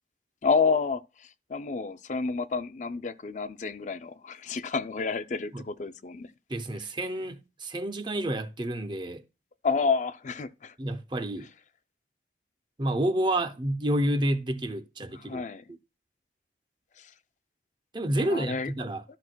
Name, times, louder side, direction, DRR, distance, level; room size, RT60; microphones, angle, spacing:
voice 1, 0.4-1.0 1.5-6.3 9.6-10.7 15.2-15.6 18.2-18.7, left 4 dB, 40° left, 0.4 m, -29 dB
voice 2, 6.5-9.2 10.8-11.5 12.8-15.8 17.9-19.0, right 1 dB, 25° right, 0.6 m, -29 dB
13.0 x 6.0 x 2.2 m
head